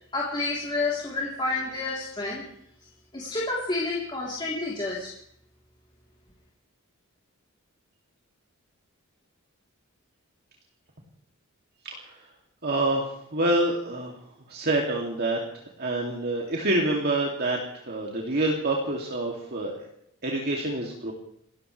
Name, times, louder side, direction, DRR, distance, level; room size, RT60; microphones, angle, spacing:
voice 1, 0.1-2.4 3.1-5.1, left 3 dB, 20° left, -5 dB, 3.5 m, -29 dB
voice 2, 11.8-12.2 12.6-14.2 14.5-15.4 15.8-19.9 20.2-21.1, right 2 dB, 45° right, -1 dB, 2.6 m, -27 dB
28.5 x 14.5 x 3.3 m, 0.70 s
head